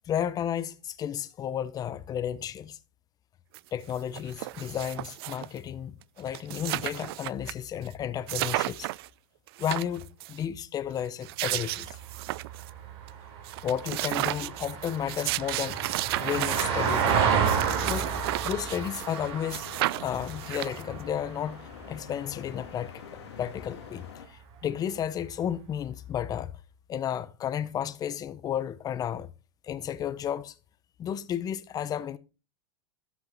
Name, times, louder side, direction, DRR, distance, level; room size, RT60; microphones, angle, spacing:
voice 1, 0.1-2.8 3.7-8.9 9.6-12.0 13.6-15.8 16.2-17.2 17.8-19.7 20.0-22.9 23.4-26.5 26.9-29.3 29.6-30.5 31.0-32.2, left 9 dB, 25° left, 0.7 m, -33 dB
sound 1, 3.5-3.6 3.9-5.6 6.0-6.1 6.3-7.5 7.8-7.9 8.3-9.1 9.5-10.4 11.0-12.7 13.1-13.2 13.4-19.2 19.5-21.0, right 19 dB, 65° right, 0.4 m, -33 dB
Vehicle, 11.8-22.3 24.6-24.7, right 7 dB, 45° right, 3.2 m, -31 dB
sound 2, 17.9-24.3, left 8 dB, 85° left, 2.3 m, -46 dB
13.0 x 6.0 x 3.9 m
supercardioid pair, 125°, 14 cm